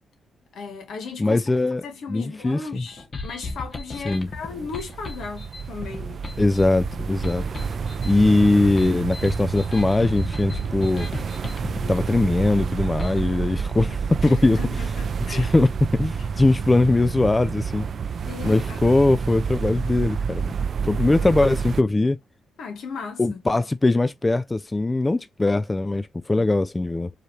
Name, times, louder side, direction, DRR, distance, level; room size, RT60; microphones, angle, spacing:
voice 1, 0.5-1.4 1.8-6.1 14.2-15.5 16.2-16.3 18.2-18.8 22.6-23.4 26.3-26.4, left 5 dB, 75° left, 1.4 m, -36 dB
voice 2, 1.2-1.8 2.1-2.8 4.1-4.3 6.4-7.4 8.0-11.1 11.9-14.6 15.3-17.9 18.4-20.5 20.8-22.2 23.2-27.1, left 2 dB, 20° left, 0.3 m, -21 dB
sound 1, 2.9-13.2, left 3 dB, 40° left, 1.1 m, -36 dB
sound 2, 3.8-21.8, right 6 dB, 55° right, 0.4 m, -29 dB
4.8 x 2.7 x 3.1 m
cardioid pair, 80°, 0 cm